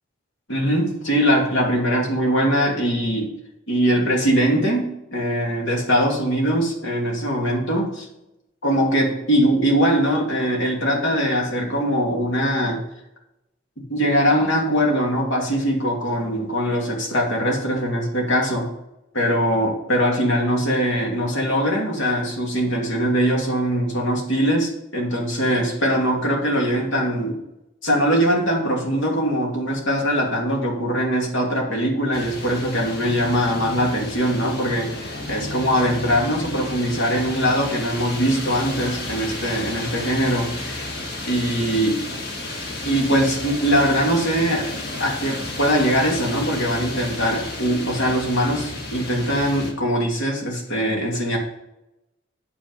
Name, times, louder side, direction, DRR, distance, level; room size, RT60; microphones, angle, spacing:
voice 1, 0.5-3.3 3.7-8.1 8.6-12.8 13.9-18.7 19.1-27.4 27.8-40.9 41.3-42.1 42.8-44.7 45.0-51.4, equal, 75° left, 0 dB, 2.6 m, -21 dB
sound 1, 32.1-49.7, left 2 dB, 55° left, 1.7 m, -32 dB
9.1 x 7.1 x 5.4 m, 0.87 s
head